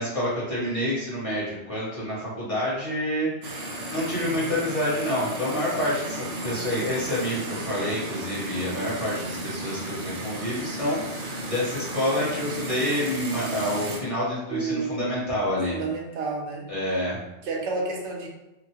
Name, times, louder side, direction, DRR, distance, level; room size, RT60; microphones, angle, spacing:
voice 1, 0.0-15.8 16.7-17.2, left 1 dB, 30° left, -9 dB, 1.1 m, -28 dB
sound 1, 3.4-14.0, right 1 dB, 45° right, 0.5 m, -34 dB
voice 2, 4.2-4.6 14.5-15.3 15.7-16.6 17.4-18.3, right 4 dB, 85° right, 0 dB, 0.9 m, -31 dB
2.9 x 2.1 x 2.7 m, 1.0 s
omnidirectional pair, 1.2 m